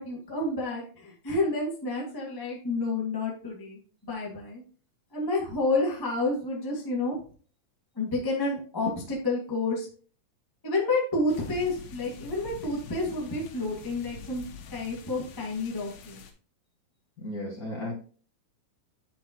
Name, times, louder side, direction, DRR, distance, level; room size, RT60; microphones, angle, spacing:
voice 1, 0.0-4.6 5.1-7.2 7.9-9.9 10.6-14.4 14.7-16.2, left 2 dB, 20° left, -3 dB, 0.6 m, -29 dB
sound 1, 11.3-16.3, left 6 dB, 90° left, 2.8 m, -46 dB
voice 2, 17.2-17.9, left 1 dB, 35° left, -4 dB, 1.5 m, -34 dB
9.9 x 4.3 x 2.9 m, 0.41 s
omnidirectional pair, 4.0 m